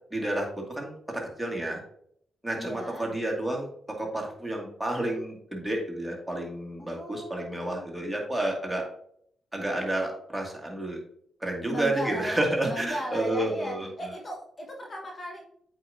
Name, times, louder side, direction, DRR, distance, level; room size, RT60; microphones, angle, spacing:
voice 1, 0.1-1.8 2.4-8.9 9.5-11.0 11.4-13.9, right 1 dB, 5° right, 0 dB, 2.3 m, -30 dB
voice 2, 2.6-3.1 6.8-7.9 11.7-15.4, equal, 40° left, 0 dB, 1.5 m, -37 dB
8.3 x 5.1 x 2.7 m, 0.67 s
supercardioid pair, 50°, 0 cm